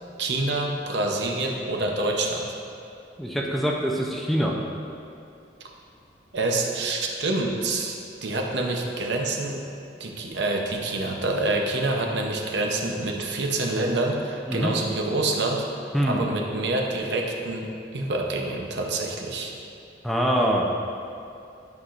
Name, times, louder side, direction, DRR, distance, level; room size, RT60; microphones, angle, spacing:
voice 1, 0.2-2.5 6.3-8.0 8.2-9.6 10.0-15.6 16.1-19.5, right 2 dB, 70° right, 1 dB, 0.8 m, -27 dB
voice 2, 3.2-4.6 14.5-14.7 15.9-16.2 20.0-20.7, equal, ahead, -2 dB, 0.5 m, -24 dB
11.0 x 5.7 x 2.5 m, 2.6 s
head